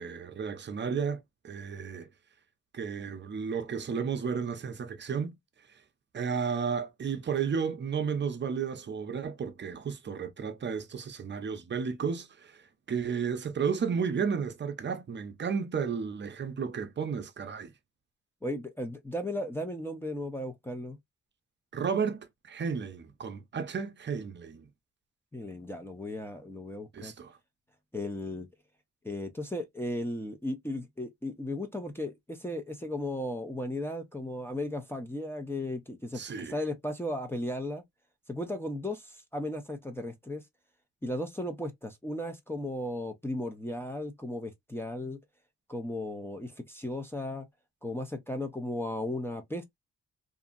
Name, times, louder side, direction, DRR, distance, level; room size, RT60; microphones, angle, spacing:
voice 1, 0.0-2.1 2.7-5.4 6.1-17.7 21.7-24.7 26.9-27.4 36.1-36.5, right 6 dB, 35° right, 0.6 m, -33 dB
voice 2, 18.4-21.0 25.3-27.1 27.9-28.5 29.0-36.2 36.5-37.8 38.3-40.4 41.0-45.2 45.7-47.5 47.8-49.8, left 1 dB, 5° left, 0.6 m, -35 dB
2.8 x 2.5 x 2.5 m
cardioid pair, 115°, 31 cm